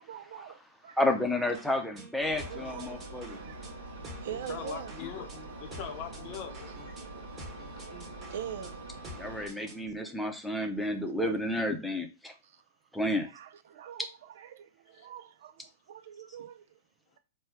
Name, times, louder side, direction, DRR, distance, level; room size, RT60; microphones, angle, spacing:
voice 1, 0.0-1.0 2.5-3.7 4.2-4.9 8.3-8.8 12.4-12.6 13.2-16.8, right 9 dB, 65° right, 0.5 m, -43 dB
voice 2, 1.0-3.4 9.2-12.3 12.9-13.3, left 1 dB, 5° left, 0.8 m, -31 dB
sound 1, 1.5-9.9, equal, 20° right, 1.4 m, -49 dB
Engine, 2.2-9.5, right 2 dB, 85° right, 1.1 m, -45 dB
voice 3, 4.3-7.0 7.7-7.9 14.9-15.1, left 8 dB, 45° left, 0.7 m, -42 dB
4.3 x 2.2 x 3.4 m
hypercardioid pair, 125°, 0 cm